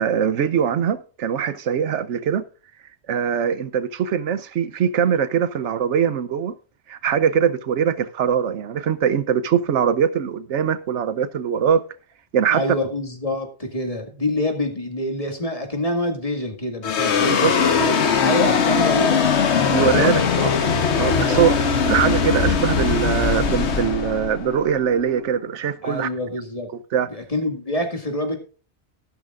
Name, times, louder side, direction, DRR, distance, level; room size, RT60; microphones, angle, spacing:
voice 1, 0.0-2.4 3.1-6.5 6.9-11.8 12.3-12.6 17.2-17.8 19.7-20.5 21.0-21.5 21.8-26.1 26.9-27.1, right 8 dB, 80° right, 1.1 m, -22 dB
voice 2, 12.5-19.3 19.6-20.3 21.0-21.4 25.8-26.7 27.1-28.3, left 1 dB, 30° left, 2.1 m, -26 dB
sound 1, 16.8-25.4, left 6 dB, 70° left, 1.3 m, -20 dB
14.0 x 12.0 x 2.5 m
omnidirectional pair, 1.2 m